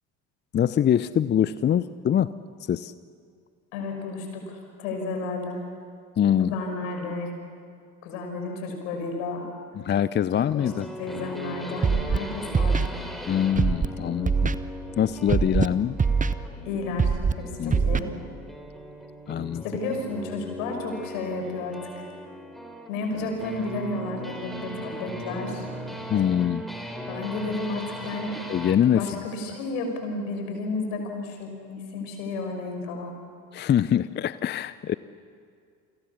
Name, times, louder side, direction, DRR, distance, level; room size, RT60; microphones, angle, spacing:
voice 1, 0.5-2.3 2.6-2.9 6.2-6.5 9.7-10.9 13.3-14.5 15.0-16.0 17.6-17.8 19.3-19.6 26.1-26.6 28.5-29.1 33.5-34.9, left 9 dB, 25° left, 16 dB, 0.6 m, -24 dB
voice 2, 3.7-5.6 6.4-7.3 8.0-9.5 10.3-10.7 11.0-12.9 16.6-18.1 19.6-22.0 22.9-25.7 27.1-28.4 28.8-33.2, left 3 dB, 65° left, 4 dB, 6.1 m, -32 dB
sound 1, 10.6-28.8, equal, ahead, 4.3 m, -38 dB
Scratching (performance technique), 11.8-12.2 12.5-12.9 13.6-13.9 14.3-14.6 15.3-15.7 16.0-16.3 17.0-17.3 17.7-18.0, right 5 dB, 15° right, 1.0 m, -22 dB
29.5 x 25.0 x 7.2 m, 2.3 s
figure-of-eight pair, 60°, 46 cm